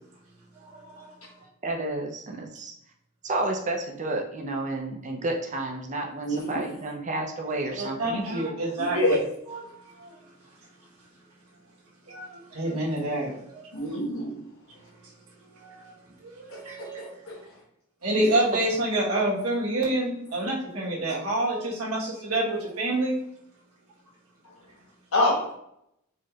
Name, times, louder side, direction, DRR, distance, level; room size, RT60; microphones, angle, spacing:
voice 1, 0.5-1.2 7.8-9.0 9.5-10.2 12.1-13.9 15.6-15.9 16.2-17.1 18.0-23.1, right 1 dB, 80° right, -5 dB, 1.3 m, -28 dB
voice 2, 1.6-2.7 3.2-8.4, right 2 dB, 35° right, 1 dB, 0.6 m, -31 dB
voice 3, 6.2-6.6 8.8-9.2 13.7-14.4 16.5-16.6 17.3-17.4 18.2-18.3 25.1-25.5, left 1 dB, 70° left, -2 dB, 1.2 m, -25 dB
4.1 x 3.1 x 2.4 m, 0.76 s
head